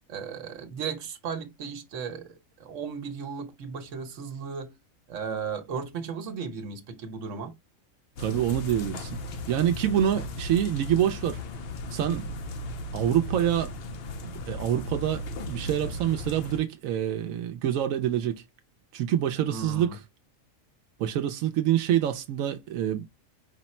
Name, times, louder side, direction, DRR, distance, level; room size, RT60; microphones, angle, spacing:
voice 1, 0.1-4.8 5.1-7.6 19.5-20.0, right 6 dB, 65° right, 1.2 m, -35 dB
sound 1, 8.2-16.6, left 1 dB, 60° left, 0.7 m, -36 dB
voice 2, 8.2-9.2 9.5-11.4 11.9-12.3 12.9-13.7 14.2-18.4 18.9-19.9 21.0-23.0, right 10 dB, 90° right, 1.0 m, -26 dB
4.9 x 2.0 x 4.2 m
omnidirectional pair, 1.4 m